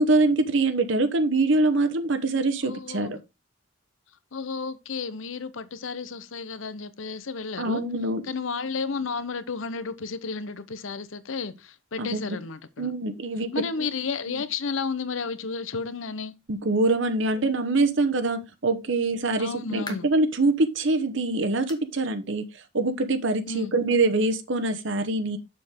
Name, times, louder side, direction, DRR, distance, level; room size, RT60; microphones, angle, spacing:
voice 1, 0.0-3.2 7.6-8.2 12.0-12.2 12.8-13.5 13.8-13.9 14.3-14.4 16.5-22.5 22.7-25.4, right 2 dB, 65° right, 0.9 m, -24 dB
voice 2, 2.6-3.2 4.3-7.8 8.2-12.9 13.5-16.3 19.4-20.1 23.5-23.7, left 4 dB, 80° left, 0.8 m, -32 dB
sound 1, 19.9-20.3 20.8-20.9 21.7-22.0 22.3-22.4 22.9-23.0 24.1-24.2, left 3 dB, 20° left, 0.9 m, -43 dB
7.1 x 6.5 x 3.6 m
head